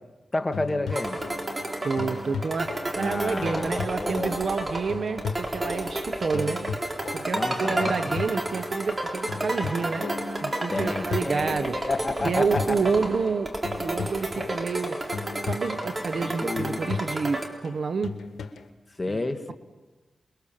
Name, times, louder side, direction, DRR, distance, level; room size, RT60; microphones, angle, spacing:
voice 1, 0.3-1.2 3.0-4.3 7.3-7.9 10.7-12.9 16.2-16.9 19.0-19.5, left 2 dB, 30° left, 7 dB, 2.0 m, -30 dB
sound 1, 0.5-18.7, left 5 dB, 90° left, 1.6 m, -37 dB
sound 2, 0.9-17.5, right 1 dB, 30° right, 4.0 m, -31 dB
voice 2, 1.8-6.7 7.1-10.1 10.4-11.8 12.2-15.0 15.5-18.2 19.1-19.2, right 5 dB, 65° right, 11 dB, 0.9 m, -29 dB
29.5 x 22.0 x 7.5 m, 1.2 s
cardioid pair, 70°, 0 cm